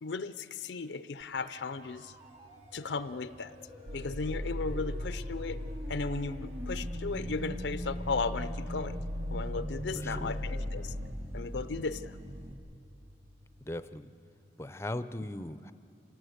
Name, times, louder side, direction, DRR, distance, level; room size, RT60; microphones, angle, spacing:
voice 1, 0.0-2.1 2.7-3.5 3.9-5.6 5.9-9.0 9.3-10.9 11.3-12.2, left 4 dB, 85° left, 13 dB, 0.6 m, -36 dB
sound 1, 1.3-14.6, left 1 dB, 60° right, 3.6 m, -55 dB
sound 2, 1.4-12.5, equal, 35° right, 1.9 m, -44 dB
sound 3, 3.9-11.1, left 1 dB, 75° right, 1.0 m, -38 dB
voice 2, 9.9-10.4 13.6-14.1 14.6-15.7, left 1 dB, 15° left, 12 dB, 0.5 m, -38 dB
27.0 x 18.0 x 8.0 m, 2.5 s
head